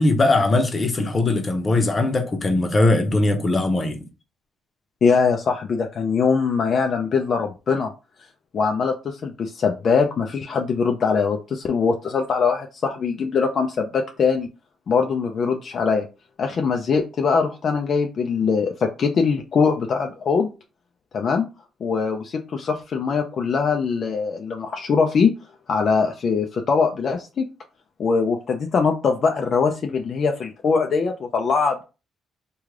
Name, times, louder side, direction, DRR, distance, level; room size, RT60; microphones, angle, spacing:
voice 1, 0.0-4.0, left 2 dB, 30° left, 0.8 m, -20 dB
voice 2, 5.0-7.9 8.5-14.5 14.9-16.1 16.4-20.5 21.1-21.5 21.8-25.3 25.7-27.5 28.0-31.8, left 5 dB, 55° left, 0.4 m, -22 dB
3.2 x 2.3 x 3.6 m
cardioid pair, 90°, 0 cm